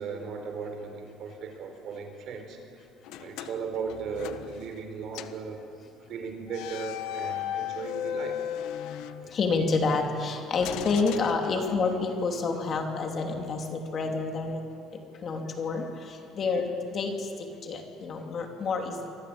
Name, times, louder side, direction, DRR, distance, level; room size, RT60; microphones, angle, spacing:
voice 1, 0.0-2.8 3.2-5.6 6.1-8.4 9.2-9.3 11.5-11.6, right 5 dB, 45° right, 5 dB, 4.5 m, -37 dB
sound 1, 3.0-4.9 5.1-5.5 6.5-9.7 10.6-12.0, left 10 dB, 70° left, 1.4 m, -36 dB
voice 2, 9.3-14.7 15.1-19.1, left 4 dB, 30° left, 3 dB, 3.0 m, -29 dB
28.5 x 23.5 x 8.7 m, 2.6 s
cardioid pair, 165°, 0 cm